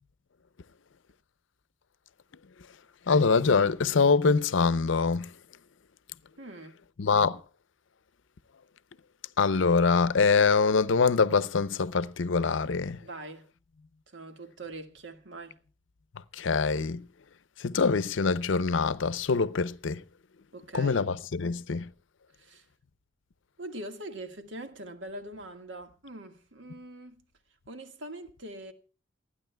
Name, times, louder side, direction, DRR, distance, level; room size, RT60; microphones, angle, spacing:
voice 1, 3.1-5.3 7.0-7.4 9.4-13.0 16.4-17.0 17.6-20.0 20.7-21.9, left 4 dB, 75° left, 0.6 m, -24 dB
voice 2, 6.4-6.8 13.0-13.5 14.1-15.6 20.5-21.1 22.4-22.6 23.6-27.2 27.7-28.7, right 1 dB, 75° right, 1.7 m, -42 dB
28.5 x 9.8 x 2.2 m
head